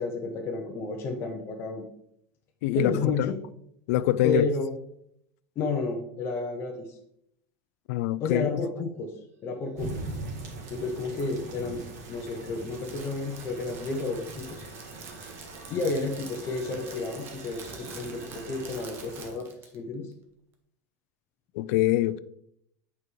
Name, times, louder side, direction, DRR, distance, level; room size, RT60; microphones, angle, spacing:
voice 1, 0.0-1.9 2.7-3.3 4.2-4.7 5.6-7.0 8.2-9.1 9.4-10.0 10.7-11.8 12.1-14.6 15.7-19.5 19.7-20.1, left 3 dB, 30° left, 0.7 m, -31 dB
voice 2, 2.6-3.3 3.9-4.4 7.9-8.6 21.6-22.2, left 15 dB, 65° left, 0.3 m, -25 dB
sound 1, 9.4-18.7, right 3 dB, 60° right, 1.8 m, -51 dB
sound 2, 9.8-19.3, right 2 dB, 90° right, 1.9 m, -42 dB
Crackle, 12.6-19.8, right 5 dB, 25° right, 0.8 m, -47 dB
8.3 x 4.7 x 3.2 m
supercardioid pair, 170°, 9 cm